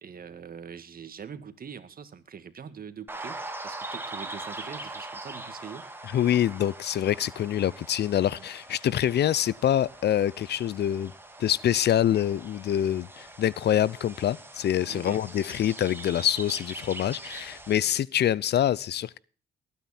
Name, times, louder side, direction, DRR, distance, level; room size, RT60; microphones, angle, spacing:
voice 1, 0.0-3.4 3.6-5.8 8.3-8.5 14.9-15.2 18.2-18.3, right 7 dB, 45° right, 2.0 m, -43 dB
sound 1, 3.1-17.7, right 2 dB, 10° right, 2.6 m, -42 dB
voice 2, 6.1-11.1 11.4-19.2, left 11 dB, 60° left, 0.6 m, -25 dB
20.0 x 9.5 x 4.3 m
cardioid pair, 90°, 20 cm